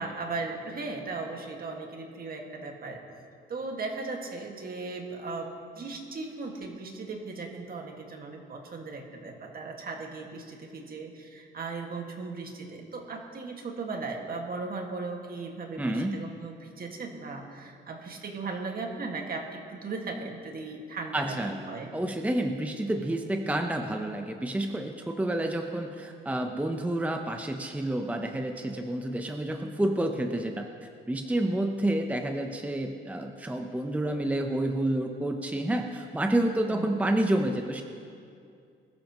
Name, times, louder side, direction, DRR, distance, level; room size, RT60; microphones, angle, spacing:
voice 1, 0.0-3.0 3.5-21.9 36.7-37.0, right 3 dB, 50° right, 2 dB, 1.9 m, -37 dB
voice 2, 15.8-16.3 21.1-21.6 21.9-37.8, right 1 dB, 5° right, 4 dB, 0.8 m, -29 dB
20.5 x 12.5 x 3.1 m, 2.4 s
cardioid pair, 90°, 20 cm